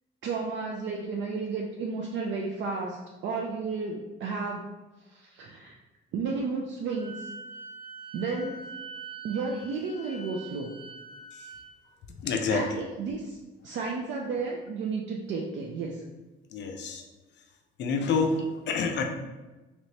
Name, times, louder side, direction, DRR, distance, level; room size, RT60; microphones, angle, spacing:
voice 1, 0.2-4.7 5.1-5.8 6.1-7.3 8.1-8.6 9.2-10.7 12.5-13.4 13.6-16.0, right 4 dB, 60° right, 0 dB, 0.4 m, -32 dB
Wind instrument woodwind instrument, 6.9-11.7, right 3 dB, 25° right, 1.0 m, -44 dB
voice 2, 12.2-12.8 16.5-17.0 17.8-19.0, left 4 dB, 55° left, 4 dB, 0.4 m, -28 dB
3.2 x 2.9 x 2.7 m, 1.2 s
cardioid pair, 150°, 21 cm